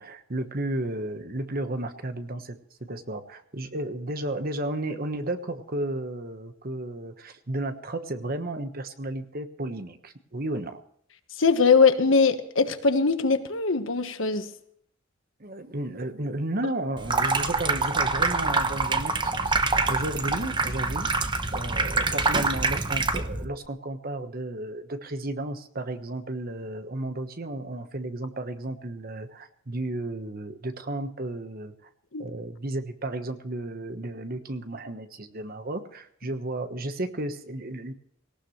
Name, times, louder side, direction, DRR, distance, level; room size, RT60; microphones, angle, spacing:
voice 1, 0.0-10.8 15.4-19.5 19.9-21.1 21.5-31.9 32.2-37.9, right 1 dB, 45° right, 1.2 m, -33 dB
voice 2, 11.4-14.5 32.1-32.3, left 4 dB, 70° left, 1.3 m, -21 dB
Water tap faucet / Sink (filling or washing), 17.0-23.5, right 3 dB, 25° right, 1.0 m, -25 dB
18.5 x 17.5 x 3.2 m
head